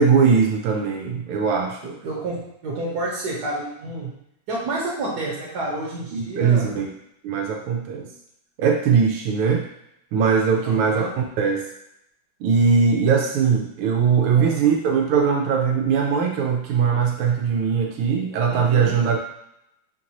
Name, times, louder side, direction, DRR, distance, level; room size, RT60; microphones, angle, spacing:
voice 1, 0.0-1.8 6.1-6.8 7.2-8.1 8.6-9.6 10.1-11.0 11.4-11.6 12.4-19.2, right 6 dB, 90° right, 1 dB, 1.5 m, -20 dB
voice 2, 1.8-4.1 4.5-6.7 10.6-11.1 14.3-14.6 18.5-19.0, right 2 dB, 55° right, -3 dB, 1.5 m, -29 dB
4.4 x 2.6 x 2.9 m, 0.79 s
omnidirectional pair, 2.3 m